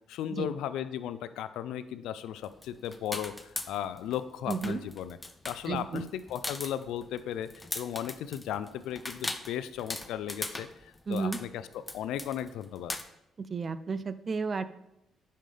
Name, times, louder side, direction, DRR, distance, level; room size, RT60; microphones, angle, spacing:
voice 1, 0.1-5.2 5.5-11.6 11.9-12.9, left 10 dB, 90° left, 13 dB, 0.4 m, -36 dB
sound 1, 2.4-4.2 4.5-13.0, left 2 dB, 15° left, 0.6 m, -39 dB
voice 2, 4.5-4.8 5.7-6.1 11.1-11.4 13.4-14.6, right 5 dB, 40° right, 14 dB, 0.4 m, -32 dB
9.0 x 5.6 x 3.4 m, 0.88 s
cardioid pair, 90°, 0 cm